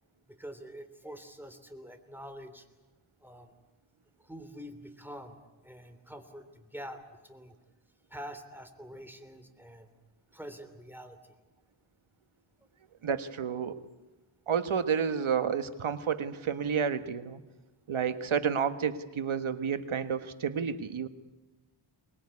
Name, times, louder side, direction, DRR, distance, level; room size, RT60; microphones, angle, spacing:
voice 1, 0.3-2.6 3.2-3.5 4.2-5.4 5.6-7.6 8.1-9.9 10.3-11.2 15.9-16.0, equal, 5° right, 8 dB, 3.1 m, -46 dB
voice 2, 13.0-13.8 14.5-17.4 17.9-21.1, right 7 dB, 80° right, 11 dB, 1.5 m, -30 dB
23.5 x 20.5 x 9.8 m, 1.1 s
wide cardioid pair, 85°, 48 cm